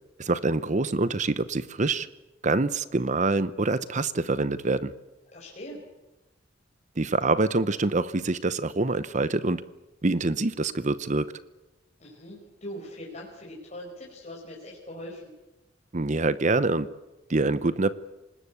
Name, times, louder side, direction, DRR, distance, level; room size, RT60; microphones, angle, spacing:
voice 1, 0.2-2.1 2.4-4.9 7.0-9.6 10.0-11.3 15.9-16.9 17.3-17.9, right 3 dB, 40° right, 15 dB, 0.8 m, -25 dB
voice 2, 5.3-5.8 12.0-15.3, equal, 35° left, -3 dB, 5.0 m, -41 dB
26.0 x 20.0 x 8.3 m, 1.0 s
head